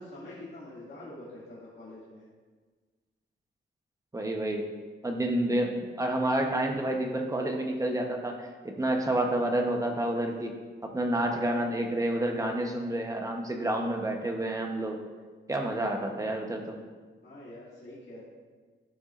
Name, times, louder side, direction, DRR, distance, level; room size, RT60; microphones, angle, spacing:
voice 1, 0.0-2.2 5.1-5.3 17.2-18.2, left 1 dB, 60° left, -10 dB, 2.2 m, -45 dB
voice 2, 4.1-4.6 5.0-8.5 8.8-10.5 10.9-15.0 15.5-16.8, right 1 dB, 15° right, 2 dB, 0.9 m, -29 dB
12.5 x 6.9 x 2.5 m, 1.4 s
wide cardioid pair, 155°, 20 cm